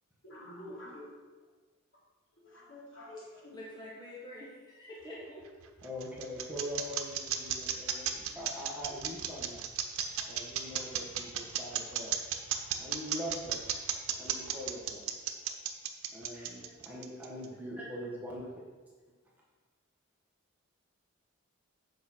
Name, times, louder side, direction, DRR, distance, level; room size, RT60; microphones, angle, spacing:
voice 1, 0.2-1.1 2.4-3.6, left 1 dB, 65° left, -5 dB, 3.0 m, -47 dB
voice 2, 3.2-5.4 15.2-15.3 16.6-16.9 17.5-17.6 18.0-18.1, left 1 dB, 20° left, -6 dB, 1.6 m, -48 dB
sound 1, 5.4-17.4, right 9 dB, 90° right, 0.9 m, -34 dB
voice 3, 5.8-9.7 10.3-12.1 12.8-13.6 14.2-15.1 16.1-18.5, equal, 10° right, -5 dB, 1.5 m, -42 dB
8.4 x 5.3 x 6.2 m, 1.4 s
head